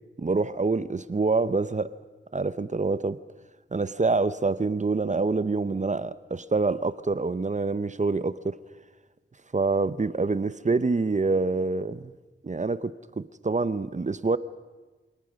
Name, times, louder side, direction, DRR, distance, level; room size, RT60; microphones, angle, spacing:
voice 1, 0.2-1.9 2.3-3.2 3.7-8.6 9.5-12.1 12.4-14.4, right 3 dB, 35° right, 15 dB, 0.7 m, -26 dB
26.0 x 18.5 x 6.4 m, 1.2 s
wide cardioid pair, 80°, 21 cm